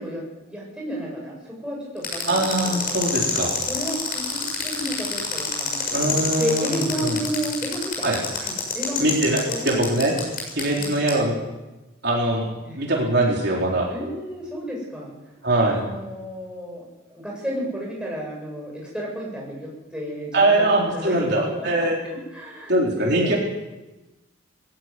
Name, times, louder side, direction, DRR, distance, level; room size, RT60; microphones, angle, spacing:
voice 1, 0.0-2.8 3.7-6.0 6.4-8.1 8.4-9.9 10.7-10.9 12.7-12.8 13.9-15.1 15.6-16.8 17.1-21.9 22.3-23.4, equal, 5° right, -3 dB, 7.9 m, -32 dB
sound 1, 2.0-11.1, left 5 dB, 45° left, 6.8 m, -27 dB
voice 2, 2.3-3.5 5.9-7.2 8.0-8.2 9.0-10.1 10.6-11.3 12.0-12.5 12.7-13.9 15.4-15.8 20.3-22.0 22.7-23.4, right 1 dB, 55° right, -2 dB, 4.1 m, -22 dB
20.5 x 16.5 x 9.7 m, 1.1 s
head